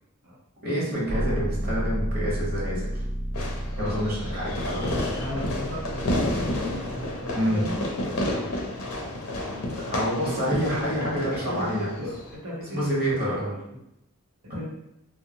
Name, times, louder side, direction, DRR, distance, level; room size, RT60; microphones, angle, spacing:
voice 1, 0.6-2.9 3.8-4.9 7.3-7.7 9.8-11.9 12.7-13.6, equal, 45° right, -6 dB, 1.0 m, -27 dB
sound 1, 1.1-8.0, equal, 25° right, 0.5 m, -32 dB
Fireworks, 3.3-12.4, left 1 dB, 75° left, 0.6 m, -31 dB
voice 2, 3.9-4.3 5.2-8.6 9.3-11.1 11.4-13.6 14.4-14.7, left 1 dB, 80° right, -5 dB, 0.7 m, -37 dB
2.7 x 2.1 x 2.7 m, 0.83 s
head